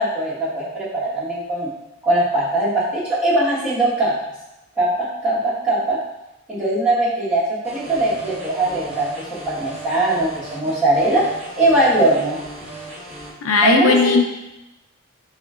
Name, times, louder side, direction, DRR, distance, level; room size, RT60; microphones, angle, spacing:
voice 1, 0.0-1.7 2.0-4.3 4.8-6.0 6.5-11.3 11.6-12.4 13.6-14.2, right 1 dB, 5° right, -10 dB, 1.1 m, -20 dB
sound 1, 7.6-13.3, right 1 dB, 30° right, 1.0 m, -37 dB
voice 2, 13.4-14.2, left 4 dB, 75° left, 3 dB, 0.5 m, -16 dB
3.2 x 3.1 x 3.6 m, 0.92 s
head